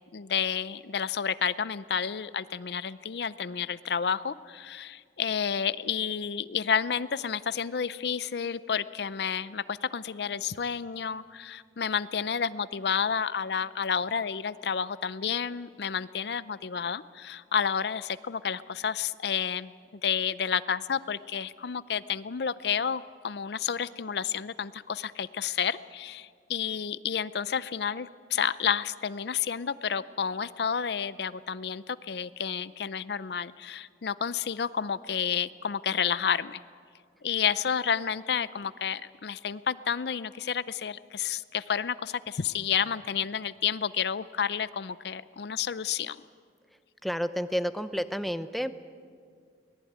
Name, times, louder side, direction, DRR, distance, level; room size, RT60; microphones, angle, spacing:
voice 1, 0.1-36.6 37.2-46.2, left 7 dB, 65° left, 17 dB, 0.5 m, -30 dB
voice 2, 47.0-48.7, equal, ahead, 11 dB, 0.7 m, -30 dB
23.5 x 18.5 x 9.4 m, 2.1 s
head